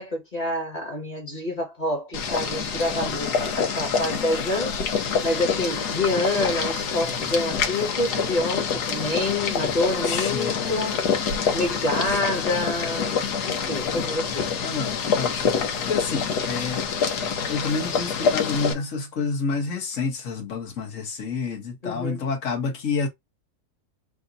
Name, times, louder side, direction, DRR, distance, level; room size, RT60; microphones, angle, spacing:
voice 1, 0.0-11.0 11.5-14.5 21.8-22.2, left 1 dB, 25° left, 1.5 m, -27 dB
Boiling, 2.1-18.7, left 6 dB, 80° left, 1.5 m, -26 dB
voice 2, 10.0-10.8 12.1-12.5 14.6-15.6 15.9-16.8 17.5-23.1, left 4 dB, 55° left, 1.7 m, -29 dB
3.6 x 2.6 x 3.8 m
omnidirectional pair, 1.7 m